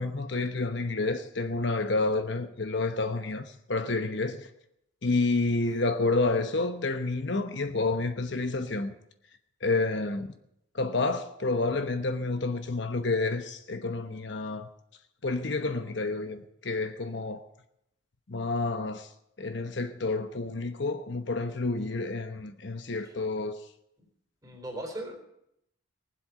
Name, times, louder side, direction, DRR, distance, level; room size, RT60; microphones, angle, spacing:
voice 1, 0.0-4.4 5.0-8.9 9.6-10.3 10.7-14.7 15.2-17.4 18.3-19.1 19.4-23.6, left 3 dB, 55° left, 1.0 m, -29 dB
voice 2, 24.4-25.3, right 1 dB, 15° right, 3.8 m, -40 dB
20.0 x 7.8 x 9.0 m
head